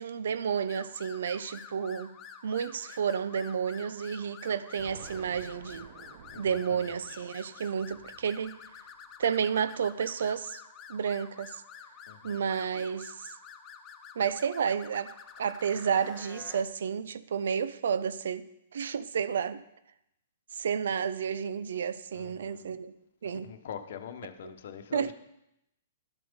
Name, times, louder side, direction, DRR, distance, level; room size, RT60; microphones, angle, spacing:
voice 1, 0.0-2.1 2.4-5.9 6.4-8.5 9.2-10.6 10.9-11.6 12.2-13.3 14.2-18.4 18.7-19.6 20.5-22.9 23.2-23.5 24.9-25.1, right 7 dB, 70° right, 0.6 m, -31 dB
sound 1, 0.7-16.6, left 7 dB, 25° left, 1.2 m, -49 dB
Explosion, 4.8-9.6, right 7 dB, 55° right, 1.1 m, -52 dB
voice 2, 6.3-7.3 12.1-12.5 22.1-22.8 23.4-25.1, left 8 dB, 65° left, 1.0 m, -44 dB
11.5 x 7.8 x 5.2 m
hypercardioid pair, 120°, 0 cm